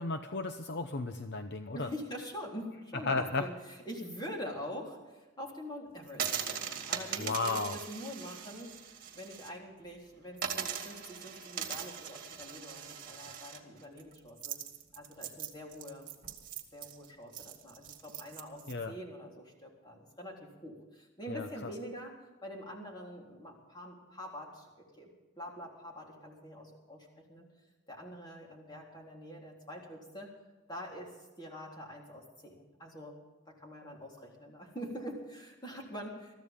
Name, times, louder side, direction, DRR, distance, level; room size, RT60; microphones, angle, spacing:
voice 1, 0.0-1.9 3.1-3.5 7.2-7.8 18.7-18.9 21.3-21.7, left 3 dB, 50° left, 7 dB, 0.8 m, -34 dB
voice 2, 1.7-14.6 15.0-16.1 16.7-25.1 25.4-27.5 27.9-30.3 30.7-33.2 33.5-36.3, equal, 20° left, -1 dB, 3.7 m, -45 dB
sound 1, 6.1-9.5 9.8-9.9 10.4-18.7, right 8 dB, 40° right, 2.1 m, -40 dB
22.5 x 14.5 x 3.7 m, 1.2 s
head